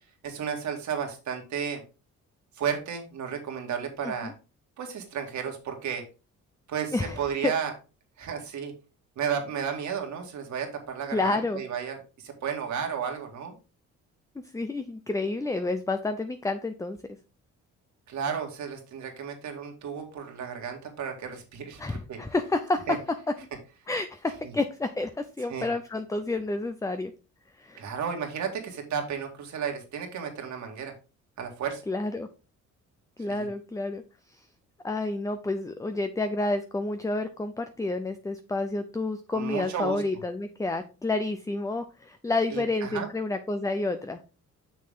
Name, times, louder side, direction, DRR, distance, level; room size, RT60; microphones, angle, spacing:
voice 1, 0.2-1.8 2.6-4.3 4.8-6.0 6.7-7.7 8.2-8.7 9.2-13.5 18.1-22.2 22.9-23.0 25.5-25.7 27.8-30.9 31.4-31.8 33.3-33.5 39.3-40.0 42.5-43.1, right 7 dB, 70° right, 3 dB, 2.1 m, -33 dB
voice 2, 6.9-7.5 11.1-11.6 14.4-17.0 21.8-23.0 23.9-27.1 27.6-27.9 31.9-32.3 33.2-34.0 34.3-34.5 34.8-44.2, left 2 dB, 10° left, 9 dB, 0.6 m, -29 dB
6.6 x 6.0 x 3.7 m, 0.32 s
cardioid pair, 90°, 30 cm